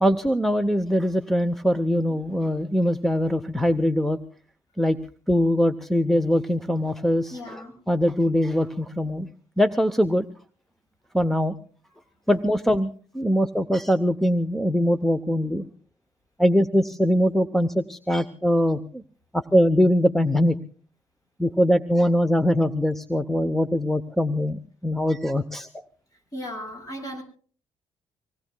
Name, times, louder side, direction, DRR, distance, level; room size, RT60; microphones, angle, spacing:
voice 1, 0.0-4.2 4.8-5.0 5.3-7.6 7.9-9.3 9.6-10.3 11.1-11.5 12.3-15.6 16.4-19.0 19.3-20.6 21.4-25.7, equal, 5° left, 6 dB, 0.7 m, -22 dB
voice 2, 7.3-7.7 26.3-27.2, equal, 30° left, 3 dB, 7.5 m, -35 dB
25.5 x 19.0 x 2.2 m, 0.44 s
cardioid pair, 130°, 12 cm